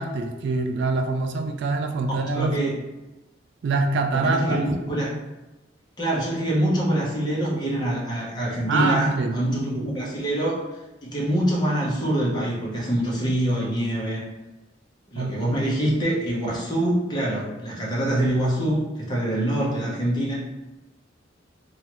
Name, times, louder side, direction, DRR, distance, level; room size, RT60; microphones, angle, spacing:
voice 1, 0.0-2.8 3.6-4.6 8.7-9.4 9.8-9.9 15.2-15.3, right 3 dB, 60° right, 5 dB, 0.3 m, -25 dB
voice 2, 2.3-2.7 4.1-5.1 6.0-10.6 11.0-14.2 15.1-20.3, right 1 dB, 20° left, -5 dB, 0.7 m, -25 dB
3.1 x 2.3 x 2.9 m, 1.1 s
head